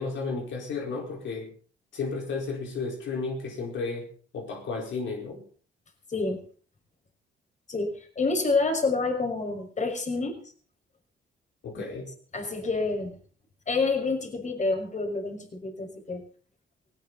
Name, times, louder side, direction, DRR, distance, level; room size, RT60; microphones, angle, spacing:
voice 1, 0.0-1.5 1.9-4.1 4.3-5.4 11.6-12.1, left 4 dB, 70° left, 1 dB, 4.8 m, -33 dB
voice 2, 6.1-6.4 7.7-10.4 12.3-13.2 13.7-16.2, left 3 dB, 35° left, 4 dB, 5.8 m, -28 dB
19.0 x 18.0 x 4.2 m, 0.42 s
cardioid pair, 90°, 20 cm